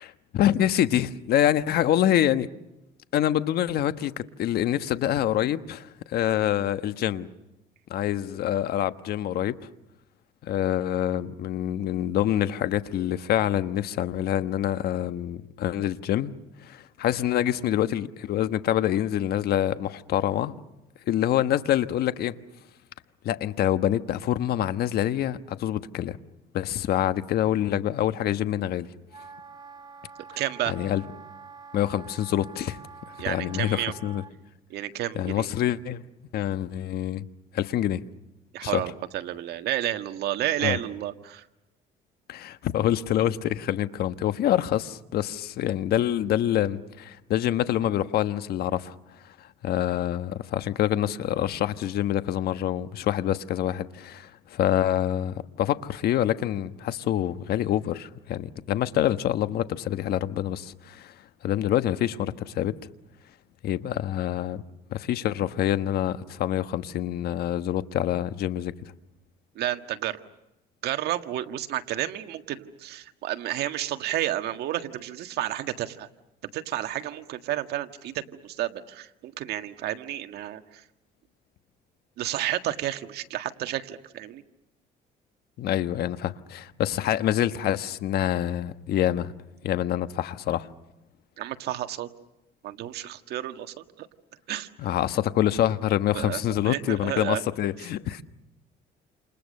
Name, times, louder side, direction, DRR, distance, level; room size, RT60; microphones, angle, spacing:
voice 1, 0.0-2.5 3.1-7.3 7.9-9.6 10.4-16.4 16.6-20.5 21.1-22.4 23.2-26.2 26.5-28.9 30.3-30.4 30.7-31.0 31.7-32.8 33.2-34.2 35.1-36.0 36.3-37.2 37.5-38.0 38.6-38.9 40.6-40.8 42.3-48.9 49.2-61.1 61.4-62.8 63.6-64.6 64.9-68.7 85.6-89.3 89.6-90.7 94.8-98.2, left 11 dB, 65° left, 1.3 m, -26 dB
Wind instrument woodwind instrument, 29.1-34.3, right 5 dB, 25° right, 1.9 m, -46 dB
voice 2, 30.4-30.7 33.2-33.9 34.7-35.5 38.5-41.4 69.5-70.2 70.8-76.1 76.5-80.6 82.2-84.4 91.4-92.1 92.6-94.1 94.5-94.7 96.1-96.4 96.6-97.4, right 13 dB, 75° right, 1.7 m, -31 dB
29.0 x 28.5 x 6.6 m
cardioid pair, 110°, 17 cm